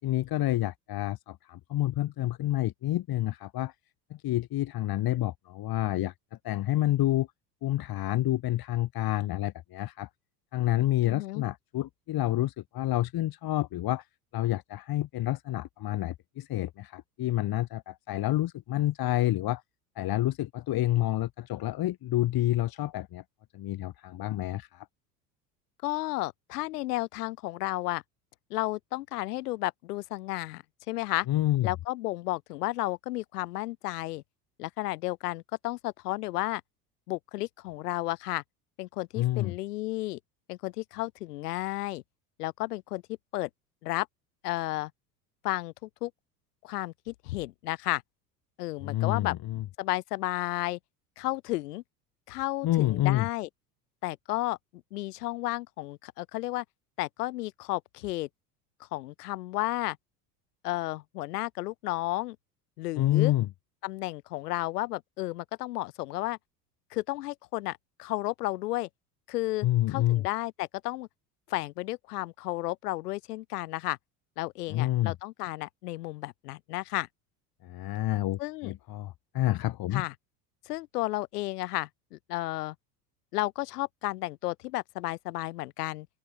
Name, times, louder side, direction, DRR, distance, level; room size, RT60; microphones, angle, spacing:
voice 1, 0.0-3.7 4.1-6.1 6.4-7.3 7.6-10.1 10.5-14.1 14.3-19.6 20.0-23.2 23.5-24.9 31.3-31.7 39.2-39.5 48.8-49.6 52.6-53.3 63.0-63.5 69.6-70.2 74.7-75.1 77.6-80.0, left 14 dB, 45° left, 5.3 m, -28 dB
voice 2, 11.0-11.4 25.8-28.0 28.5-31.3 31.6-34.2 34.6-36.6 37.1-38.4 38.8-40.2 40.5-42.0 42.4-43.0 43.3-43.5 43.8-44.1 44.4-44.9 45.4-46.1 46.6-48.0 48.6-49.3 49.8-50.8 51.2-51.8 52.3-53.5 54.0-54.6 54.9-56.6 57.0-58.3 58.9-60.0 60.6-62.4 62.8-63.3 63.8-66.4 66.9-68.9 69.3-71.1 71.5-74.0 74.4-77.1 78.4-78.7 79.9-80.1 80.7-82.7 83.3-86.1, left 18 dB, 70° left, 2.6 m, -32 dB
open air
hypercardioid pair, 75°, 48 cm